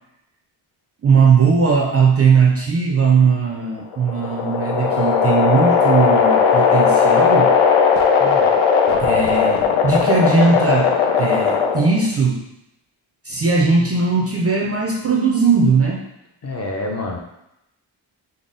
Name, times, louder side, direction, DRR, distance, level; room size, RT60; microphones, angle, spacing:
voice 1, 1.0-7.5 9.0-12.4 13.3-16.0, right 5 dB, 35° right, -1 dB, 0.4 m, -18 dB
sound 1, 3.8-12.0, left 6 dB, 80° left, 0.6 m, -17 dB
voice 2, 16.4-17.2, left 2 dB, 35° left, 0 dB, 0.5 m, -27 dB
3.9 x 2.0 x 3.7 m, 0.85 s
wide cardioid pair, 135°, 48 cm